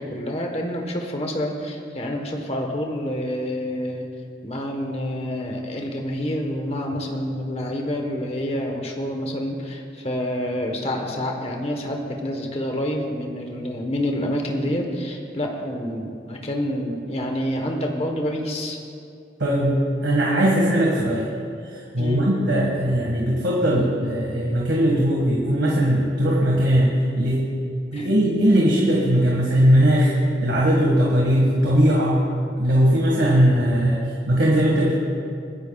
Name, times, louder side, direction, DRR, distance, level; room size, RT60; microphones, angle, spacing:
voice 1, 0.0-4.1 4.4-18.8 22.0-22.3 27.9-28.1, equal, 35° left, 2 dB, 1.2 m, -28 dB
voice 2, 19.4-19.8 20.0-21.3 21.6-27.4 27.9-30.1 30.4-32.2 32.6-34.0 34.3-34.9, equal, 80° right, -4 dB, 1.8 m, -19 dB
28.5 x 10.0 x 2.4 m, 2.4 s
head